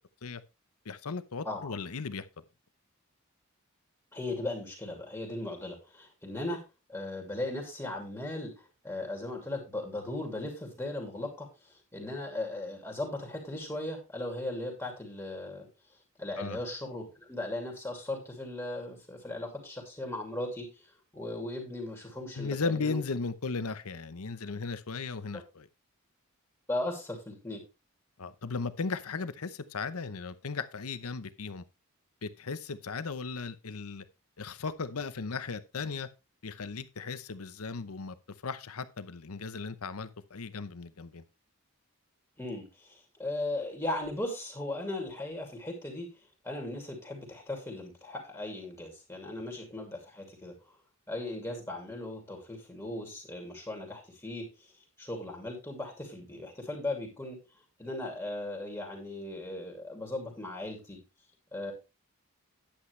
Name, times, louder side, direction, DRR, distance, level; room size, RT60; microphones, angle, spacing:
voice 1, 0.8-2.3 16.4-16.6 22.3-25.7 28.2-31.6 32.2-34.0 34.4-36.1 36.4-38.2 38.4-41.2, left 4 dB, 80° left, 0.8 m, -36 dB
voice 2, 1.4-1.8 4.1-6.6 6.9-15.7 16.2-20.7 21.1-23.0 25.3-25.4 26.7-27.6 42.4-46.1 46.4-50.5 51.1-54.5 55.0-57.4 57.8-61.0 61.5-61.7, left 2 dB, 15° left, 2.4 m, -37 dB
10.0 x 8.5 x 3.2 m
head